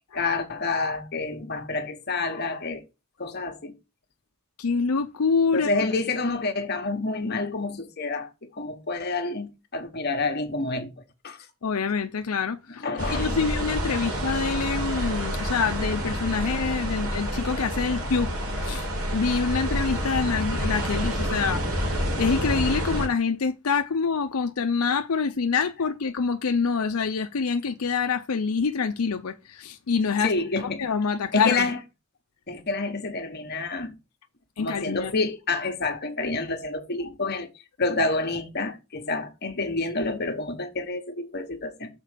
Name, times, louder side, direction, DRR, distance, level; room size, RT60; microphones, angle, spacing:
voice 1, 0.1-2.8 3.2-3.7 5.5-8.3 8.6-10.9 11.2-11.5 12.8-13.4 20.3-20.4 21.3-21.4 30.2-30.8 31.3-31.8 32.5-33.9 34.6-37.5 37.8-41.9, left 3 dB, 50° left, 1.3 m, -28 dB
voice 2, 4.6-5.7 11.6-18.9 19.1-21.6 22.2-30.3 30.8-31.7 34.6-35.1, left 5 dB, 80° left, 0.6 m, -26 dB
sound 1, 13.0-23.1, equal, 75° right, 3.1 m, -28 dB
6.7 x 4.5 x 6.6 m
head